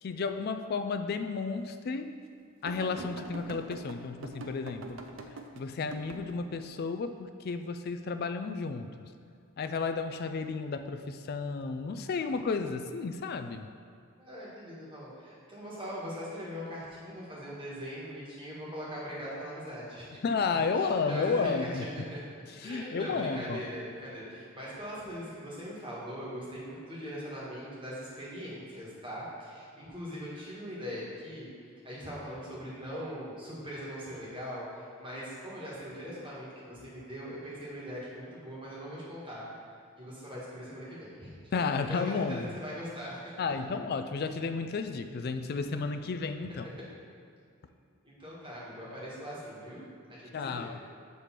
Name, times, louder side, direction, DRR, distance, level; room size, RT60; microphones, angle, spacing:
voice 1, 0.0-2.1 2.6-5.0 5.6-9.1 9.6-13.7 20.2-21.8 22.5-23.6 41.5-42.5 43.4-46.7 50.3-50.8, left 4 dB, 45° left, 8 dB, 0.3 m, -32 dB
sound 1, 2.7-6.6 10.1-10.5 11.6-11.7, right 2 dB, 60° right, 0.5 m, -44 dB
voice 2, 14.2-20.2 20.5-22.2 22.6-43.3 46.5-46.7 48.0-49.8 50.1-50.7, equal, 20° right, -7 dB, 1.5 m, -41 dB
6.8 x 3.2 x 5.7 m, 2.3 s
head